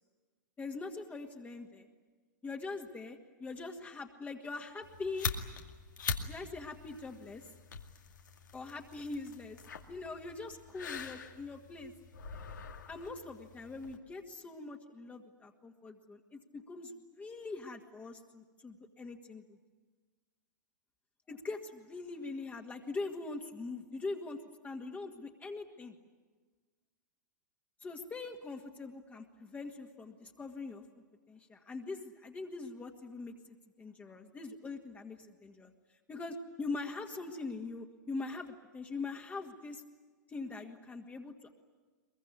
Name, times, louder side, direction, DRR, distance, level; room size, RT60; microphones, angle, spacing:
voice 1, 0.6-1.9 2.4-5.3 6.3-7.4 8.5-9.6 9.9-11.9 12.9-19.6 21.3-24.4 24.6-26.0 27.8-30.8 31.3-33.3 33.8-35.7 36.1-39.8 40.3-41.3, left 3 dB, 15° left, 2 dB, 1.9 m, -42 dB
sound 1, 4.8-14.0, left 5 dB, 75° left, 2.3 m, -43 dB
22.5 x 22.5 x 9.7 m, 1.4 s
figure-of-eight pair, 105°, 10 cm